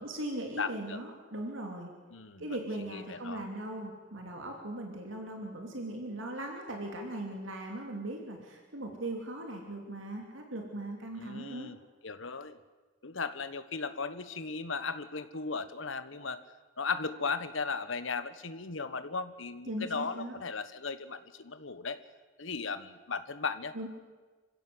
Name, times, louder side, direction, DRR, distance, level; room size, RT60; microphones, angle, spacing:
voice 1, 0.0-1.9 2.4-11.7 19.7-20.4 23.7-23.9, right 1 dB, 75° right, 2 dB, 3.0 m, -39 dB
voice 2, 0.6-1.0 2.1-2.5 2.8-3.4 11.2-11.8 12.0-12.6 13.0-16.4 16.8-22.0 22.4-23.9, left 4 dB, 75° left, 12 dB, 1.3 m, -36 dB
27.0 x 16.0 x 7.9 m, 1.3 s
head